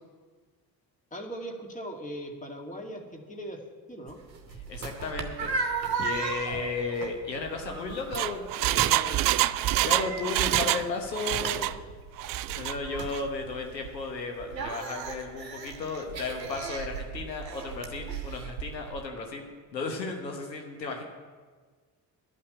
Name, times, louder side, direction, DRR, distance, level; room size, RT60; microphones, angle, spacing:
voice 1, 1.1-3.6 3.9-4.2, right 1 dB, 15° left, 2 dB, 2.1 m, -39 dB
sound 1, 4.1-19.0, right 4 dB, 90° right, 0.9 m, -37 dB
voice 2, 4.7-9.3 9.8-11.7 12.6-21.0, left 4 dB, 85° left, 3 dB, 1.1 m, -34 dB
Engine, 7.9-10.9 11.1-11.8 12.2-12.7 13.1-13.2, right 15 dB, 45° right, 0.5 m, -26 dB
11.5 x 5.6 x 9.0 m, 1.5 s
figure-of-eight pair, 45°, 49 cm